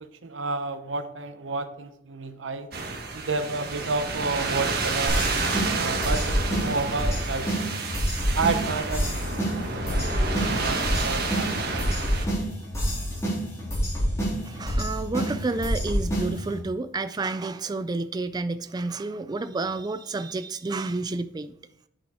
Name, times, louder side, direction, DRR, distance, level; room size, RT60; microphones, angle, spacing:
voice 1, 0.0-2.7 3.1-7.8 8.3-12.1, right 3 dB, 90° right, 9 dB, 0.9 m, -31 dB
sound 1, 2.7-12.3, right 3 dB, 60° right, 1.5 m, -30 dB
sound 2, 5.1-16.6, equal, 15° left, 3.8 m, -28 dB
voice 2, 14.4-21.6, right 3 dB, 20° right, 11 dB, 0.3 m, -30 dB
8.9 x 6.3 x 4.8 m, 0.79 s
head